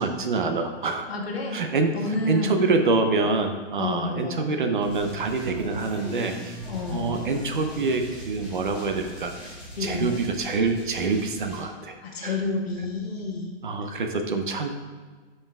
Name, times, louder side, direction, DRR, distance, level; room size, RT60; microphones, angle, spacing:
voice 1, 0.0-1.1 1.5-6.6 6.9-12.0 12.2-12.4 13.6-14.8, right 3 dB, 45° right, 6 dB, 0.7 m, -26 dB
voice 2, 1.1-1.6 1.9-2.7 3.8-4.6 6.7-7.2 9.8-10.2 12.0-13.5, left 3 dB, 60° left, 0 dB, 1.6 m, -29 dB
sound 1, 4.8-11.6, equal, 5° right, 0.9 m, -39 dB
13.0 x 5.4 x 2.3 m, 1.4 s
hypercardioid pair, 175°, 35 cm